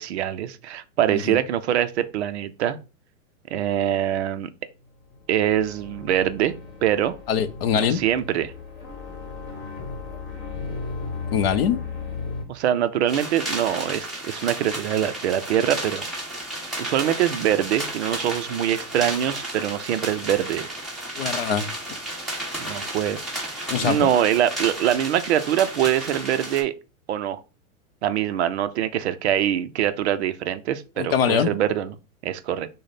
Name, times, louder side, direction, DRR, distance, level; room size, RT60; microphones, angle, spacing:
voice 1, 0.0-2.8 3.5-4.5 5.3-6.5 6.8-7.1 7.7-8.5 12.5-16.0 16.8-20.7 22.6-23.2 23.5-26.7 27.1-27.4 28.0-31.9 32.2-32.7, right 11 dB, 50° right, 0.5 m, -24 dB
sound 1, 5.0-12.4, left 4 dB, 25° left, 1.3 m, -35 dB
voice 2, 7.3-8.0 11.3-11.8 21.2-21.6 23.7-24.0 31.0-31.5, left 8 dB, 45° left, 0.5 m, -22 dB
sound 2, 13.1-26.6, right 1 dB, ahead, 1.1 m, -33 dB
6.2 x 2.1 x 4.0 m
hypercardioid pair, 140°, 43 cm